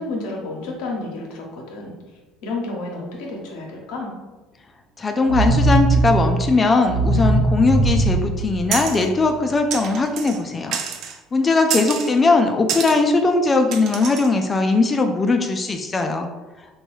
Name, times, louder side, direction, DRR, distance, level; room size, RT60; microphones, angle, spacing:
voice 1, 0.0-2.0 2.4-4.1, left 2 dB, 70° left, 0 dB, 0.7 m, -30 dB
voice 2, 5.0-10.8 11.3-16.3, left 3 dB, 30° left, 4 dB, 0.3 m, -19 dB
sound 1, 5.3-9.3, right 2 dB, 80° right, 0.7 m, -20 dB
sound 2, 8.7-9.1 9.7-10.4 10.7-11.2 11.7-12.1 12.7-13.0 13.7-14.3, right 7 dB, 60° right, 0.3 m, -28 dB
3.0 x 2.2 x 3.0 m, 1.2 s
hypercardioid pair, 70°, 0 cm